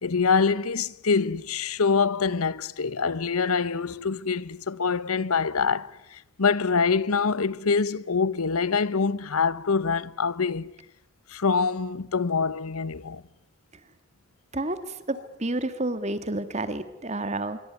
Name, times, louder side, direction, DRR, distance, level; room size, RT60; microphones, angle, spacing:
voice 1, 0.0-10.7 11.3-13.2, left 5 dB, 80° left, 0.9 m, -25 dB
voice 2, 14.5-17.6, right 2 dB, 30° right, 1.8 m, -30 dB
25.5 x 23.0 x 9.4 m
head